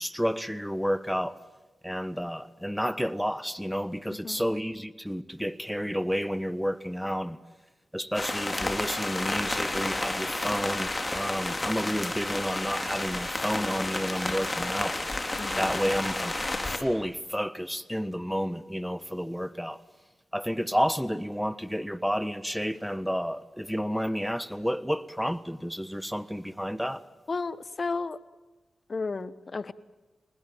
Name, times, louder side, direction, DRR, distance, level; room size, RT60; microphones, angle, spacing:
voice 1, 0.0-1.4 1.8-7.4 7.9-15.0 15.6-16.3 16.7-19.8 20.3-27.0, equal, ahead, 1.4 m, -30 dB
sound 1, 8.1-16.8, left 2 dB, 25° left, 4.1 m, -31 dB
voice 2, 27.3-28.2 28.9-29.7, left 4 dB, 50° left, 1.2 m, -33 dB
29.5 x 19.5 x 9.2 m
supercardioid pair, 40°, 0 cm